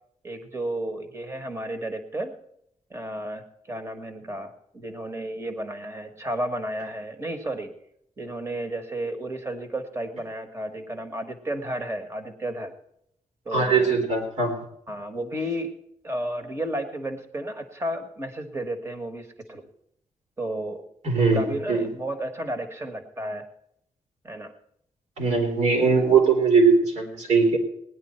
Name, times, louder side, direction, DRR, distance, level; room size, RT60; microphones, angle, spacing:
voice 1, 0.2-2.3 2.9-7.7 8.2-12.7 13.4-14.0 14.9-15.7 16.0-19.6 20.4-20.8 21.2-23.4 24.2-24.5, right 1 dB, 20° right, 6 dB, 1.6 m, -32 dB
voice 2, 13.5-14.6 21.0-21.9 25.2-27.6, right 4 dB, 70° right, 1 dB, 3.6 m, -20 dB
18.5 x 10.5 x 4.4 m, 0.72 s
wide cardioid pair, 170°, 12 cm